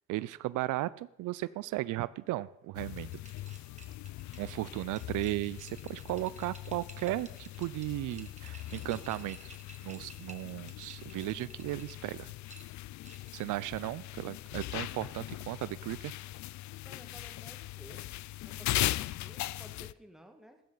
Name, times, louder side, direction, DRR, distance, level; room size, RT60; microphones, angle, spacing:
voice 1, 0.1-3.1 4.4-9.5 9.8-12.3 13.3-16.1, right 17 dB, 85° right, 19 dB, 0.5 m, -36 dB
sound 1, 2.7-19.9, left 16 dB, 70° left, 0.5 m, -40 dB
sound 2, 2.9-12.0 12.5-13.4, right 3 dB, 25° right, 2.1 m, -54 dB
voice 2, 16.7-18.2 18.4-20.6, right 1 dB, ahead, 5 dB, 1.8 m, -55 dB
15.0 x 12.5 x 3.9 m, 0.88 s
cardioid pair, 90°, 30 cm